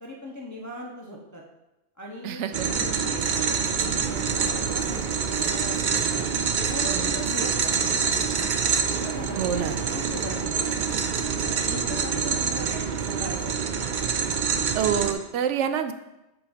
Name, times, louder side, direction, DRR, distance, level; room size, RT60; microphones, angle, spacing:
voice 1, 0.0-1.4 2.0-6.3 6.7-7.8 8.9-10.6 11.2-13.9, equal, 20° left, -2 dB, 0.7 m, -39 dB
voice 2, 2.2-2.7 6.9-7.3 9.3-9.8 14.7-15.9, right 8 dB, 80° right, 10 dB, 0.9 m, -27 dB
sound 1, 2.5-15.1, right 6 dB, 55° right, 0.6 m, -26 dB
sound 2, 3.5-11.4, right 1 dB, 5° right, 0.9 m, -43 dB
7.4 x 3.7 x 5.1 m, 0.96 s
omnidirectional pair, 1.2 m